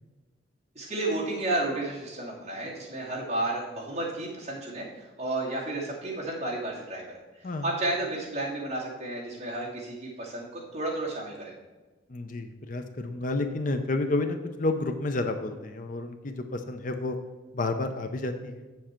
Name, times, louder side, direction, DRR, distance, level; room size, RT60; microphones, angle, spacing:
voice 1, 0.7-11.5, right 2 dB, 35° right, -5 dB, 2.4 m, -32 dB
voice 2, 12.1-17.2 17.5-18.7, left 2 dB, 45° left, 7 dB, 0.6 m, -30 dB
7.6 x 7.3 x 4.4 m, 1.3 s
head